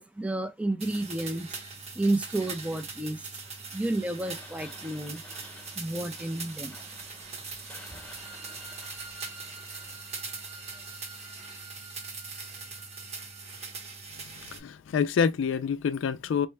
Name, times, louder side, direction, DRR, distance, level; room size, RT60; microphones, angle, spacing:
voice 1, 0.0-1.5 1.9-3.3 3.7-5.2 5.8-6.7, right 2 dB, 5° right, 0.4 m, -31 dB
sound 1, 0.8-14.6, right 4 dB, 35° right, 1.0 m, -41 dB
sound 2, 3.4-11.1, left 2 dB, 10° left, 0.9 m, -52 dB
sound 3, 7.8-13.6, right 2 dB, 65° right, 2.3 m, -50 dB
voice 2, 14.5-16.5, left 6 dB, 75° left, 0.3 m, -27 dB
4.3 x 2.2 x 3.1 m
head